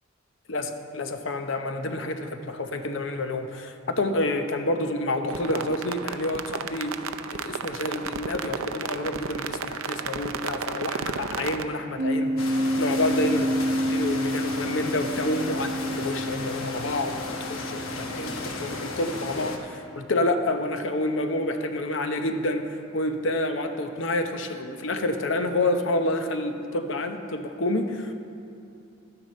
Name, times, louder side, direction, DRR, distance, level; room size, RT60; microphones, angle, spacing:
voice 1, 0.5-7.0 7.3-13.6 13.9-17.2 17.5-28.1, left 2 dB, 65° left, 7 dB, 0.7 m, -28 dB
sound 1, 5.3-11.6, right 6 dB, 85° right, 0.5 m, -33 dB
sound 2, 12.0-19.0, equal, 60° right, 0.8 m, -29 dB
sound 3, 12.4-19.6, left 3 dB, 90° left, 1.0 m, -35 dB
12.5 x 9.5 x 4.2 m, 2.6 s
head